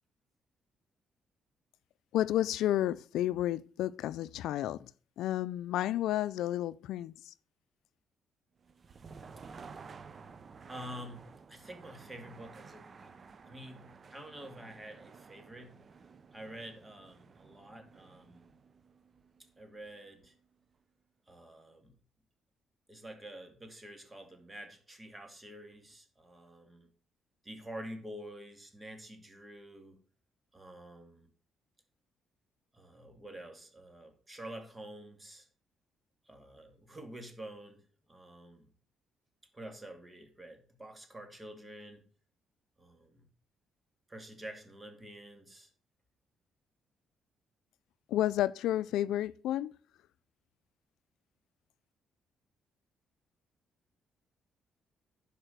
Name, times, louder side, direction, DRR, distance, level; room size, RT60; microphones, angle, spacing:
voice 1, 2.1-4.9 5.2-7.3 48.1-49.7, left 13 dB, 85° left, 0.4 m, -31 dB
sound 1, 8.6-20.5, right 5 dB, 40° right, 0.7 m, -53 dB
voice 2, 10.7-13.2 13.4-15.8 16.3-18.4 19.6-20.3 21.3-21.9 22.9-26.9 27.4-30.0 30.5-31.3 32.7-35.5 36.3-37.8 38.1-38.7 39.5-42.0 42.8-43.3 44.1-45.7, right 1 dB, 20° right, 2.4 m, -48 dB
11.0 x 4.9 x 6.6 m
cardioid pair, 90°, 0 cm